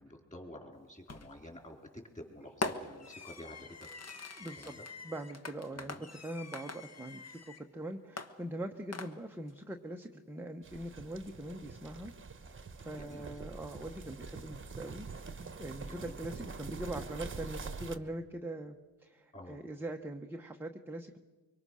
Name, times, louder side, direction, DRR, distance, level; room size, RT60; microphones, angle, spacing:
voice 1, 0.0-1.8 2.1-3.6 4.6-4.8 5.7-6.1 13.0-13.2 15.9-16.1 19.3-19.6, left 1 dB, 15° left, 2 dB, 4.2 m, -50 dB
Fireworks, 1.1-1.5 2.6-7.7 8.2-9.5, left 3 dB, 30° left, 1.4 m, -43 dB
voice 2, 4.3-4.7 5.0-7.4 7.7-12.1 12.8-15.1 15.3-21.2, right 1 dB, 5° right, 3 dB, 0.9 m, -42 dB
sound 1, 10.6-18.0, right 4 dB, 25° right, 1.2 m, -45 dB
24.0 x 24.0 x 6.4 m, 1.3 s
wide cardioid pair, 125°, 47 cm